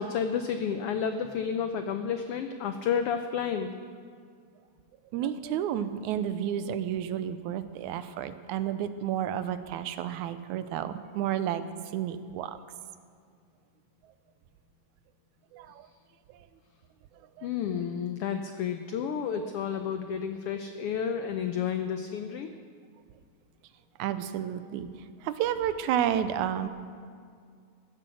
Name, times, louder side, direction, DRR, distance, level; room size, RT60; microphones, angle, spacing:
voice 1, 0.0-3.7 17.4-22.5, left 7 dB, 85° left, 7 dB, 1.3 m, -31 dB
voice 2, 5.1-11.6 11.9-12.6 15.5-15.7 17.4-17.5 24.0-24.9 25.2-26.7, right 10 dB, 90° right, 12 dB, 2.1 m, -31 dB
15.5 x 10.0 x 6.3 m, 2.2 s
omnidirectional pair, 3.4 m